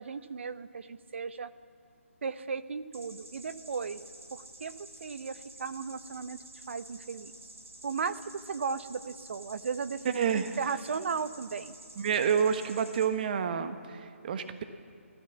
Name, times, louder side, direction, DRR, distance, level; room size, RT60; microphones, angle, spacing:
voice 1, 0.0-1.5 2.2-4.0 4.3-4.7 5.0-7.3 7.8-8.2 8.5-11.7, right 5 dB, 60° right, 12 dB, 1.1 m, -36 dB
sound 1, 2.9-13.1, right 2 dB, 80° right, 4.9 m, -50 dB
voice 2, 10.1-10.6 12.0-14.6, right 7 dB, 40° right, 9 dB, 1.3 m, -29 dB
29.5 x 15.5 x 7.2 m, 2.5 s
figure-of-eight pair, 145°, 7 cm